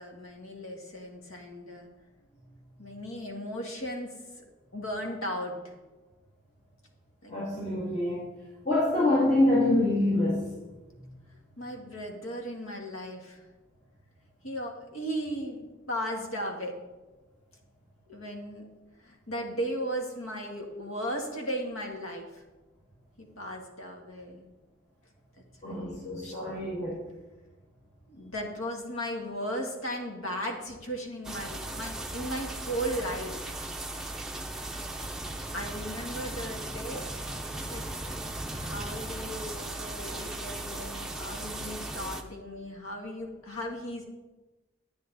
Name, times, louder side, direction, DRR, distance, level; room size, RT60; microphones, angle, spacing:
voice 1, 0.0-1.9 2.8-4.1 4.7-5.7 7.2-7.3 11.6-13.4 14.4-16.8 18.1-18.7 19.0-22.4 23.2-24.5 25.6-26.6 28.1-33.4 35.5-37.1 37.5-37.8 38.5-44.0, equal, 80° left, 1 dB, 1.8 m, -36 dB
voice 2, 7.3-8.2 8.7-10.5 25.6-26.9, left 1 dB, 30° left, -8 dB, 2.1 m, -25 dB
sound 1, 31.2-42.2, right 1 dB, ahead, 0.6 m, -37 dB
10.5 x 9.2 x 4.0 m, 1.2 s
head